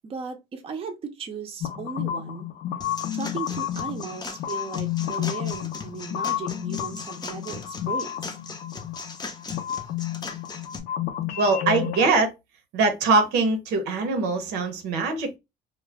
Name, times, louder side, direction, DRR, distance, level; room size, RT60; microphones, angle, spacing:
voice 1, 0.0-2.5 3.1-8.4, right 5 dB, 35° right, 0.5 m, -36 dB
sound 1, 1.6-12.1, left 11 dB, 75° left, 0.5 m, -31 dB
sound 2, 2.8-10.8, left 4 dB, 25° left, 0.5 m, -39 dB
voice 2, 11.4-12.3 12.7-15.4, right 3 dB, 90° right, 0.7 m, -22 dB
2.2 x 2.1 x 3.3 m
cardioid pair, 110°, 17 cm